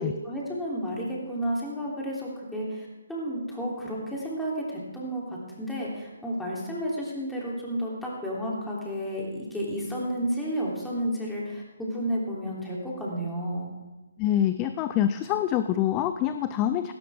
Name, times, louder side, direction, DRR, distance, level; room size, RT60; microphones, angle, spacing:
voice 1, 0.0-13.7, equal, 5° left, -5 dB, 3.5 m, -32 dB
voice 2, 14.2-16.9, left 11 dB, 20° left, 11 dB, 0.5 m, -25 dB
18.0 x 17.0 x 3.7 m, 1.2 s
figure-of-eight pair, 140°, 0 cm